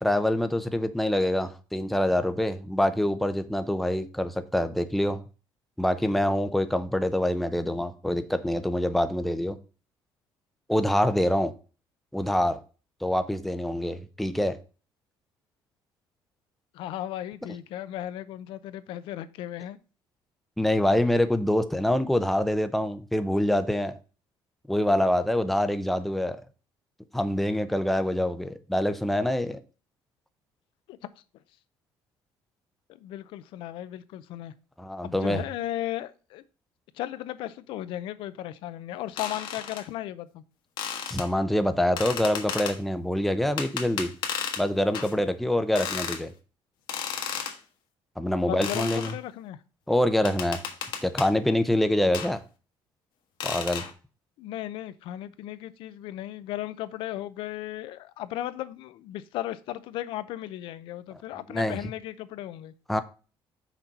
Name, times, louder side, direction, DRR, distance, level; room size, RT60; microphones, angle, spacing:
voice 1, 0.0-5.2 5.8-9.6 10.7-11.5 12.1-12.6 13.0-14.6 20.6-23.9 24.7-26.4 27.1-29.6 34.8-35.4 41.1-44.1 44.6-46.3 48.2-49.1 49.9-50.6 51.0-52.4 53.4-53.8 61.5-61.8 62.9-63.0, left 1 dB, ahead, 0.5 m, -25 dB
voice 2, 16.7-19.8 30.9-31.0 32.9-34.5 35.0-36.4 36.9-40.4 48.4-49.6 54.4-62.7, left 13 dB, 75° left, 0.6 m, -36 dB
sound 1, 39.2-39.8 40.8-41.3 42.0-42.8 43.6-44.6 44.9-45.1 45.8-46.2 46.9-47.6 48.6-49.2 50.3-51.3 52.1-52.3 53.4-53.9, left 7 dB, 60° left, 1.2 m, -33 dB
6.0 x 4.3 x 5.2 m
cardioid pair, 165°, 9 cm